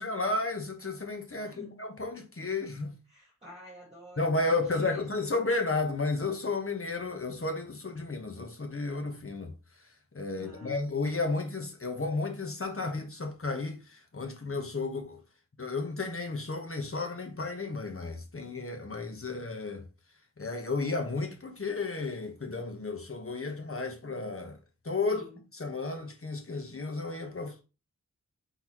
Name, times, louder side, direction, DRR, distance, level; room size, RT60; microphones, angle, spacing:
voice 1, 0.0-3.0 4.2-9.5 10.1-15.2 15.6-19.8 20.4-24.6 24.8-25.3 25.5-27.6, left 3 dB, 45° left, 1.0 m, -33 dB
voice 2, 1.4-1.8 3.1-5.2 10.4-10.9 25.1-25.4, right 1 dB, 20° right, 1.5 m, -49 dB
4.0 x 3.9 x 3.0 m
wide cardioid pair, 70°, 32 cm